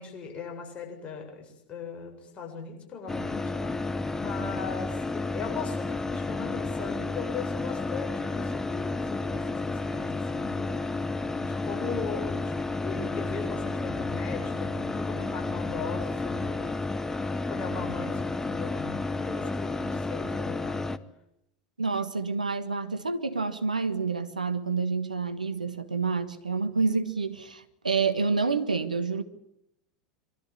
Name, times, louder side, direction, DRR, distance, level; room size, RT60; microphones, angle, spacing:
voice 1, 0.0-10.8 11.3-16.7 17.2-20.9, left 5 dB, 30° left, 7.5 m, -39 dB
sound 1, 3.1-21.0, left 3 dB, 10° left, 1.1 m, -31 dB
voice 2, 21.8-29.2, right 4 dB, 90° right, 1.5 m, -28 dB
24.0 x 13.5 x 9.9 m
figure-of-eight pair, 85°, 4 cm